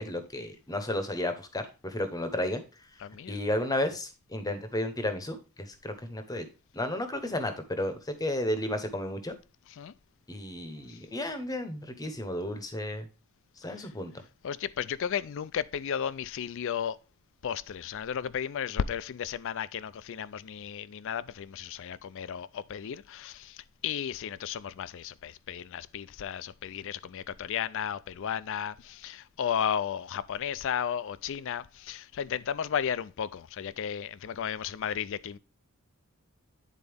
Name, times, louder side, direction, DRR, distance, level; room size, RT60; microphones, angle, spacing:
voice 1, 0.0-2.6 3.3-6.5 6.7-9.3 10.3-13.0 13.6-14.1, left 1 dB, 15° left, 0.8 m, -33 dB
voice 2, 3.0-3.3 9.8-9.9 14.4-17.0 17.4-35.4, left 8 dB, 60° left, 0.4 m, -34 dB
9.7 x 4.0 x 3.4 m
head